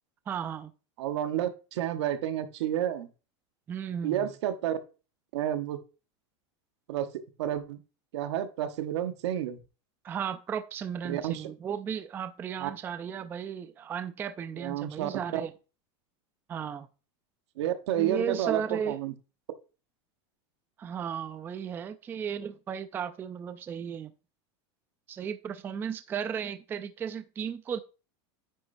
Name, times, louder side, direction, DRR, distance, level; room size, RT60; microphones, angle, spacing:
voice 1, 0.3-0.7 3.7-4.3 10.0-15.5 16.5-16.9 17.9-19.0 20.8-24.1 25.1-27.8, right 7 dB, 15° right, 0.3 m, -35 dB
voice 2, 1.0-3.1 4.0-4.8 5.3-5.8 6.9-7.1 7.4-7.8 8.1-9.6 11.0-11.5 12.6-12.7 14.6-15.4 17.6-19.1, right 11 dB, 75° right, 1.1 m, -30 dB
9.8 x 6.5 x 2.6 m
supercardioid pair, 155°, 14 cm